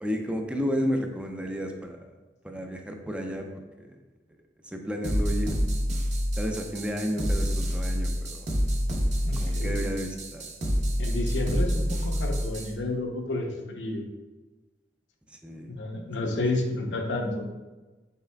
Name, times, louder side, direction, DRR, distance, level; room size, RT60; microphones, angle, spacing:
voice 1, 0.0-2.1 2.4-3.5 3.8-3.9 4.7-5.5 6.4-8.5 9.4-10.5 15.3-15.7 16.2-16.4, equal, 5° right, 3 dB, 0.3 m, -32 dB
sound 1, 5.0-12.7, equal, 40° right, 0.7 m, -27 dB
voice 2, 9.2-9.8 11.0-14.0 15.7-17.5, left 2 dB, 75° left, 2 dB, 0.7 m, -31 dB
5.7 x 3.8 x 2.2 m, 1.2 s
head